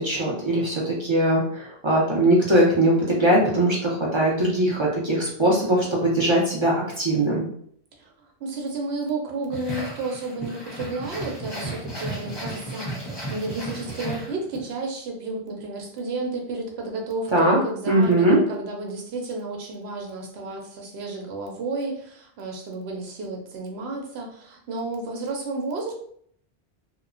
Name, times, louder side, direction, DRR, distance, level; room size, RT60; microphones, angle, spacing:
voice 1, 0.0-7.5 17.3-17.6 17.9-18.4, right 1 dB, 35° right, -4 dB, 0.6 m, -21 dB
voice 2, 8.4-25.9, right 2 dB, 85° right, 1 dB, 0.9 m, -32 dB
sound 1, 9.5-14.7, right 1 dB, 25° left, 0.7 m, -34 dB
2.9 x 2.1 x 2.5 m, 0.62 s
omnidirectional pair, 1.0 m